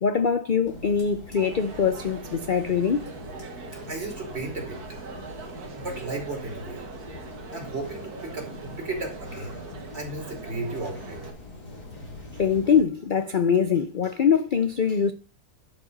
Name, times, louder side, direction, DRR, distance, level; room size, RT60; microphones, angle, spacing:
voice 1, 0.0-3.1 12.3-15.1, left 6 dB, 60° left, 0.5 m, -23 dB
sound 1, 0.6-12.8, left 2 dB, 90° left, 5.5 m, -43 dB
Crowd, 1.4-11.3, right 4 dB, 70° right, 2.0 m, -42 dB
voice 2, 3.9-4.8 5.7-6.9 7.5-9.6 9.9-11.2, right 2 dB, 40° right, 3.0 m, -34 dB
11.0 x 5.0 x 5.3 m
omnidirectional pair, 1.7 m